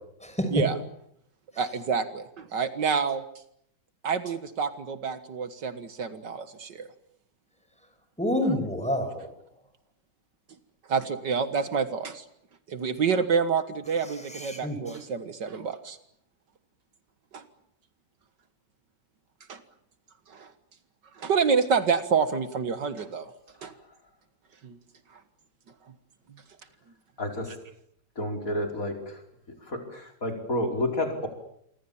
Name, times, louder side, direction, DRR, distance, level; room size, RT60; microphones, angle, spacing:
voice 1, 1.6-3.2 4.0-6.9 10.9-12.2 12.7-16.0 17.3-17.4 19.5-19.6 20.3-20.5 21.2-23.3 23.6-23.7 24.6-24.8, right 5 dB, 70° right, 11 dB, 2.1 m, -28 dB
voice 2, 8.2-9.3 14.3-15.0, left 1 dB, 5° left, 6 dB, 6.1 m, -28 dB
voice 3, 27.2-27.6 28.2-29.2 29.6-31.3, left 1 dB, 45° left, 3 dB, 5.4 m, -30 dB
28.0 x 25.0 x 7.2 m, 0.72 s
omnidirectional pair, 2.0 m